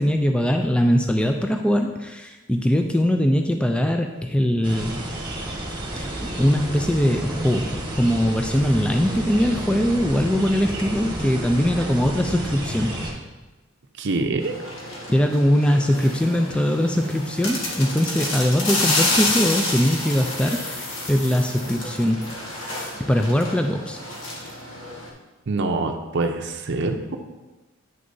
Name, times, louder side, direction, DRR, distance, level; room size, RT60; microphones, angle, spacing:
voice 1, 0.0-5.0 6.0-12.9 15.1-22.3 23.0-24.0, equal, 5° left, 4 dB, 0.3 m, -21 dB
sound 1, 4.6-13.1, right 1 dB, 20° right, 1.2 m, -31 dB
voice 2, 14.0-14.6 25.5-27.2, right 3 dB, 60° right, 4 dB, 0.6 m, -25 dB
sound 2, 14.4-25.1, left 2 dB, 70° left, 1.6 m, -29 dB
8.9 x 6.4 x 2.7 m, 1.2 s
head